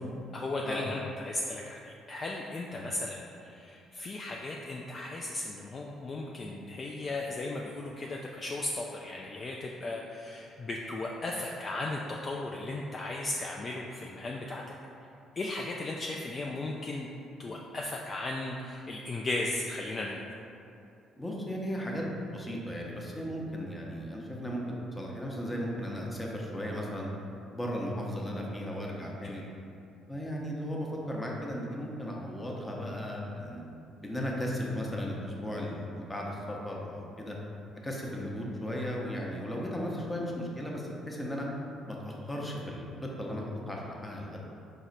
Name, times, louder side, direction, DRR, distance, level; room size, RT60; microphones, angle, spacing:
voice 1, 0.3-15.1 15.4-17.1 17.4-20.2 29.2-29.5, left 2 dB, 40° left, -1 dB, 0.3 m, -36 dB
voice 2, 21.2-22.0 22.3-27.1 27.5-29.4 30.1-33.6 34.0-37.4 37.8-41.5 41.9-44.5, equal, 15° left, -2 dB, 0.8 m, -36 dB
4.6 x 2.1 x 4.0 m, 2.7 s
hypercardioid pair, 50°, 0 cm